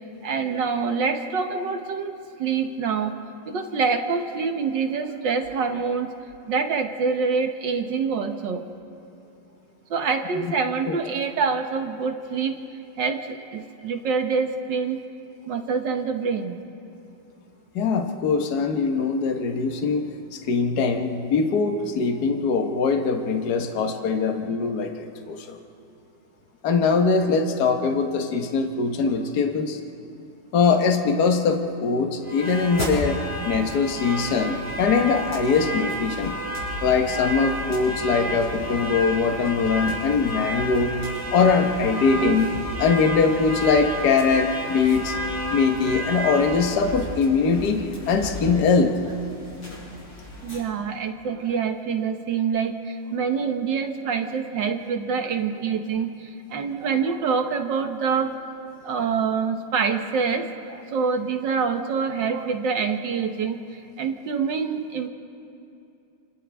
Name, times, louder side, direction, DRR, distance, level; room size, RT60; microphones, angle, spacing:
voice 1, 0.2-2.1 2.4-3.1 3.5-6.1 6.5-8.6 9.9-12.5 13.0-15.0 15.5-16.6 50.4-58.3 58.8-63.6 64.0-65.1, right 5 dB, 60° right, 6 dB, 1.5 m, -26 dB
voice 2, 17.7-20.0 20.5-25.5 26.6-29.8 30.5-33.2 33.4-36.4 36.8-40.9 41.3-42.5 42.8-45.1 45.5-48.9, left 5 dB, 50° left, 4 dB, 1.6 m, -22 dB
sound 1, 32.2-50.6, equal, 70° left, 7.6 m, -31 dB
30.0 x 28.5 x 3.5 m, 2.6 s
omnidirectional pair, 2.4 m